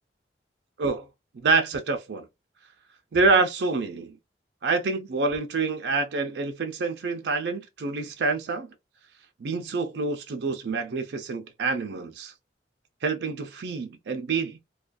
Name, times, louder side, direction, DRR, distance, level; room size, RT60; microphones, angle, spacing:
voice 1, 1.4-2.2 3.1-4.2 4.6-8.7 9.4-12.3 13.0-14.6, right 3 dB, 75° right, 0.4 m, -27 dB
2.3 x 2.2 x 2.4 m
head